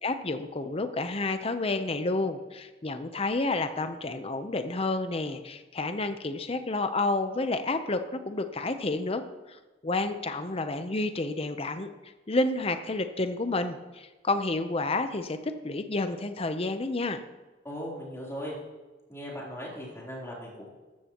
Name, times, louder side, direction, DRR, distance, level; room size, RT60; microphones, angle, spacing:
voice 1, 0.0-9.2 9.5-11.9 12.3-17.2, left 2 dB, 30° left, 9 dB, 0.7 m, -30 dB
voice 2, 17.6-18.6 19.1-20.7, equal, 15° left, -4 dB, 3.5 m, -38 dB
14.0 x 13.5 x 3.0 m, 1.2 s
head